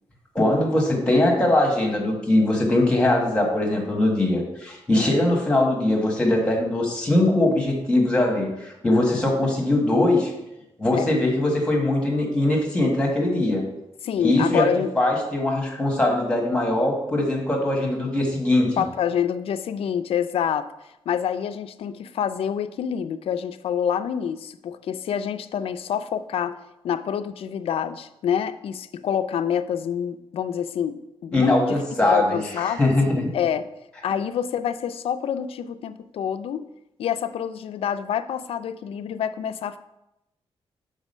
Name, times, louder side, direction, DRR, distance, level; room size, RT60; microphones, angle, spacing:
voice 1, 0.3-10.3 10.8-13.6 14.2-14.7 15.0-18.8 31.3-33.3, left 1 dB, 10° left, 0 dB, 1.4 m, -21 dB
voice 2, 14.0-14.9 18.8-20.7 21.1-26.6 26.8-31.8 32.1-32.9 33.3-33.7 34.0-36.7 37.0-39.8, left 8 dB, 70° left, 11 dB, 0.4 m, -27 dB
6.0 x 3.8 x 5.4 m, 0.88 s
wide cardioid pair, 160°, 10 cm